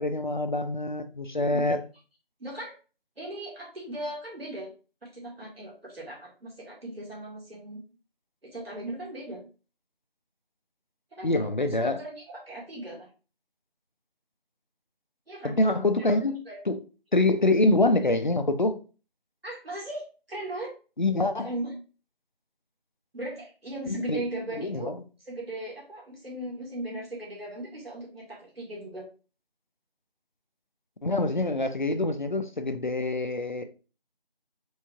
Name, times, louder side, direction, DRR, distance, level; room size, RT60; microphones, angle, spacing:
voice 1, 0.0-1.8 11.2-12.0 15.4-16.8 17.1-18.8 21.0-21.5 23.9-24.2 24.6-25.0 31.0-33.6, left 2 dB, 50° left, 0.5 m, -25 dB
voice 2, 2.4-2.7 3.2-4.7 5.0-7.8 8.4-9.4 11.1-11.5 11.8-13.1 15.3-15.6 16.0-16.2 16.5-16.6 19.4-20.7 21.4-21.7 23.1-24.9 25.2-29.0, right 1 dB, 75° right, 2.1 m, -38 dB
4.7 x 3.3 x 2.7 m
figure-of-eight pair, 175°, 30 cm